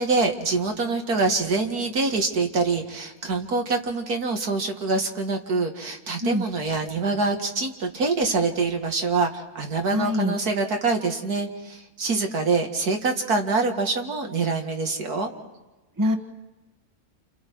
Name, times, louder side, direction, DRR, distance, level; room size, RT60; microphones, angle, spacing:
voice 1, 0.0-15.3, right 3 dB, 85° right, 3 dB, 2.5 m, -25 dB
voice 2, 9.9-10.4 16.0-16.2, left 1 dB, 15° right, 6 dB, 1.2 m, -23 dB
29.0 x 29.0 x 4.7 m, 1.1 s
omnidirectional pair, 1.6 m